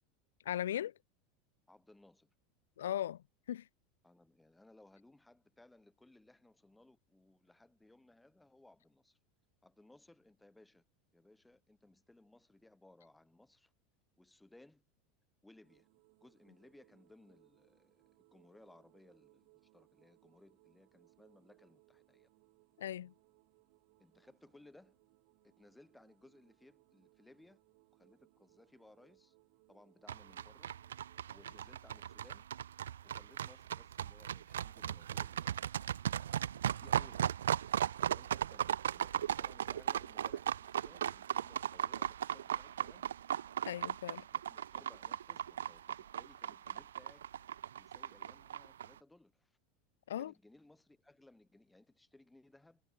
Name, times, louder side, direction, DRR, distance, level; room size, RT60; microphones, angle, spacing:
voice 1, 0.5-0.9 2.8-3.2 3.5-3.6 22.8-23.1 43.7-44.2 50.1-50.3, left 11 dB, 80° left, 0.3 m, -37 dB
voice 2, 1.7-2.3 4.0-9.2 9.6-10.8 11.1-13.7 14.2-14.8 15.4-15.9 16.2-22.3 24.0-25.0 25.4-27.6 27.9-29.4 29.7-30.7 31.3-32.5 33.0-35.7 36.8-37.4 38.0-43.1 44.3-47.2 47.7-49.6 50.2-52.8, left 2 dB, 10° left, 4.6 m, -63 dB
sound 1, 15.6-31.8, right 32 dB, 65° right, 6.6 m, -70 dB
sound 2, 30.1-48.9, right 10 dB, 80° right, 0.5 m, -37 dB
hypercardioid pair, 85°, 0 cm